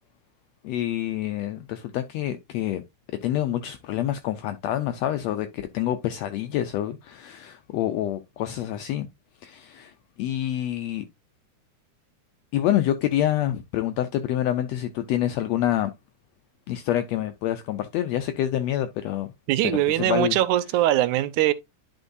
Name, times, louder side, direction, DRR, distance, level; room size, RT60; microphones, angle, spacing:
voice 1, 0.6-2.8 3.2-9.1 9.4-9.9 10.2-11.0 12.5-15.9 16.7-19.3 19.9-20.4, left 12 dB, 80° left, 1.5 m, -27 dB
voice 2, 19.5-21.5, right 14 dB, 80° right, 2.0 m, -22 dB
10.5 x 4.4 x 2.6 m
omnidirectional pair, 3.6 m